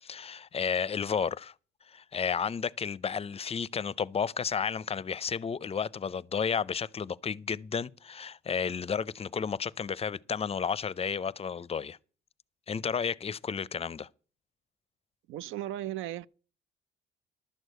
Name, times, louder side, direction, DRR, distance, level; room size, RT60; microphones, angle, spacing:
voice 1, 0.0-1.5 1.9-12.0 12.7-14.1, left 6 dB, 30° left, 0.5 m, -32 dB
voice 2, 15.3-16.3, right 13 dB, 85° right, 0.5 m, -36 dB
11.5 x 6.3 x 7.9 m
cardioid pair, 90°, 20 cm